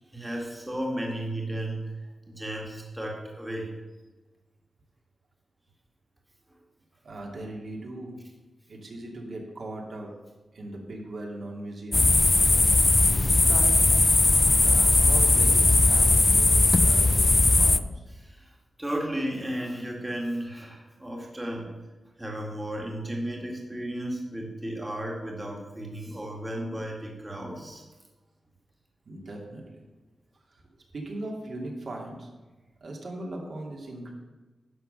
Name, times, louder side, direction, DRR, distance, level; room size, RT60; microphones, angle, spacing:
voice 1, 0.1-3.7 12.3-12.4 17.5-17.6 18.2-21.7 22.2-27.8, right 1 dB, 10° right, -1 dB, 1.9 m, -34 dB
voice 2, 7.0-8.2 8.7-10.1 10.5-12.2 13.2-14.0 14.5-18.0 29.1-29.8 30.5-30.6 30.9-32.3 32.8-34.1, right 1 dB, 60° right, -1 dB, 2.4 m, -39 dB
sound 1, 11.9-17.8, left 2 dB, 25° left, 0.4 m, -19 dB
11.0 x 5.8 x 6.7 m, 1.2 s
wide cardioid pair, 110°, 0 cm